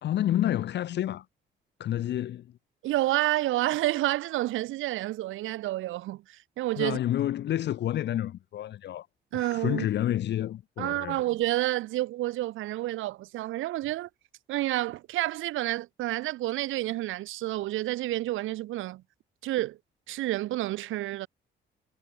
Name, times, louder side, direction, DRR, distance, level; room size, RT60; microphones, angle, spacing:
voice 1, 0.0-1.3 1.8-2.5 6.8-9.1 9.3-11.2, left 12 dB, 60° left, 0.6 m, -29 dB
voice 2, 2.8-7.0 9.3-9.9 10.8-14.1 14.5-19.0 19.4-19.8 20.1-21.3, right 16 dB, 85° right, 1.0 m, -29 dB
cardioid pair, 90°, 20 cm